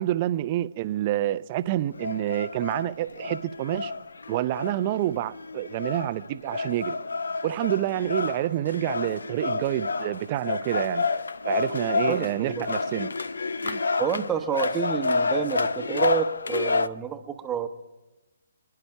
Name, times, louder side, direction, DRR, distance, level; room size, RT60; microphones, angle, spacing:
voice 1, 0.0-3.9 4.3-7.0 7.4-11.1 11.4-13.1 13.6-13.8, right 14 dB, 35° right, 0.6 m, -28 dB
sound 1, 1.9-16.9, left 4 dB, 75° left, 0.6 m, -29 dB
voice 2, 12.1-12.7 14.0-17.7, right 8 dB, 15° right, 1.0 m, -29 dB
28.5 x 10.5 x 4.7 m
figure-of-eight pair, 140°, 0 cm